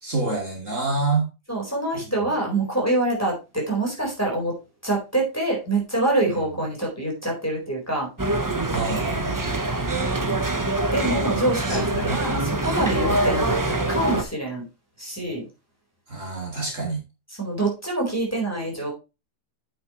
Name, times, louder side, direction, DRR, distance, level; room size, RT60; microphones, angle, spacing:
voice 1, 0.0-1.3 2.1-2.2 6.3-6.4 8.7-9.6 11.7-12.5 12.9-13.2 16.1-17.0, right 3 dB, 45° right, -1 dB, 2.8 m, -28 dB
voice 2, 1.5-4.6 4.8-8.1 10.9-13.6 13.9-14.6 15.0-15.5 17.4-18.9, right 2 dB, 10° left, -2 dB, 4.0 m, -25 dB
sound 1, 8.2-14.2, right 2 dB, 20° right, 0.5 m, -24 dB
8.7 x 7.5 x 3.0 m, 0.27 s
omnidirectional pair, 1.8 m